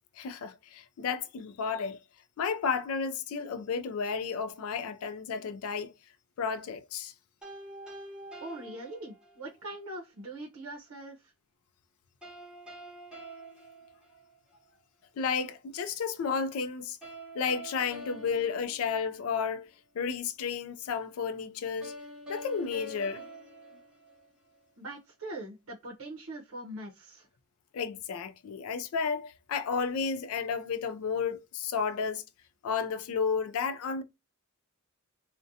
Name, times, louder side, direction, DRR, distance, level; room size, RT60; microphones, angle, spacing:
voice 1, 0.2-2.0 2.4-5.9 6.4-7.1 15.2-17.0 17.3-19.7 19.9-21.9 22.3-23.2 27.7-32.2 32.6-34.0, left 6 dB, 75° left, 0.3 m, -32 dB
sound 1, 7.4-9.6 12.2-14.6 17.0-19.5 21.8-24.6, right 1 dB, 5° right, 0.9 m, -46 dB
voice 2, 8.4-11.3 24.8-27.3, right 1 dB, 70° right, 0.6 m, -42 dB
2.4 x 2.1 x 2.6 m
head